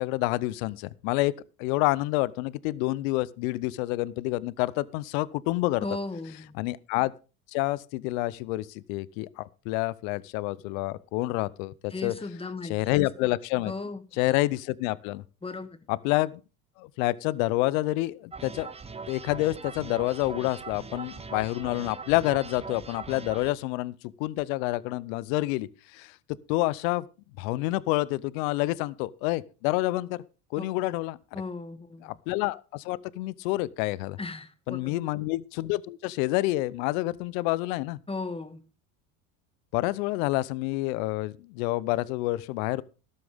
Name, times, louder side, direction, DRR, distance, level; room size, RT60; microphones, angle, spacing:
voice 1, 0.0-1.3 1.6-5.8 6.6-7.1 7.5-12.1 12.7-13.7 14.2-15.2 15.9-16.4 16.8-18.7 19.1-23.9 24.2-26.1 26.5-27.1 27.4-30.2 30.5-31.2 32.0-34.2 34.7-38.0 39.7-42.8, left 19 dB, 70° left, 0.7 m, -28 dB
voice 2, 5.8-6.6 11.9-13.0 13.6-14.0 15.4-15.8 30.6-30.9 31.3-32.2 34.2-35.1 38.1-38.6, left 3 dB, 15° left, 1.7 m, -36 dB
sound 1, 18.3-23.5, right 4 dB, 15° right, 1.0 m, -41 dB
12.5 x 12.5 x 3.6 m
hypercardioid pair, 85°, 42 cm